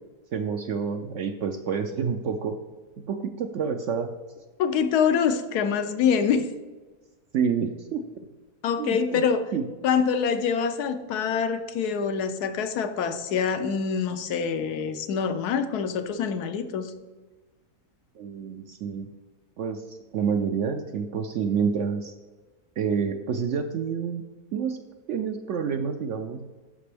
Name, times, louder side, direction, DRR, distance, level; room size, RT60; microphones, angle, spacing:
voice 1, 0.3-2.6 3.1-4.1 6.3-6.4 7.3-8.0 8.8-9.2 9.5-9.7 18.2-19.1 19.6-22.1 22.8-24.2 24.5-24.8 25.1-26.4, right 6 dB, 70° right, 7 dB, 0.7 m, -28 dB
voice 2, 4.6-6.4 8.6-9.4 9.8-16.9, left 6 dB, 80° left, 9 dB, 1.2 m, -25 dB
12.5 x 5.2 x 3.4 m, 1.3 s
omnidirectional pair, 1.6 m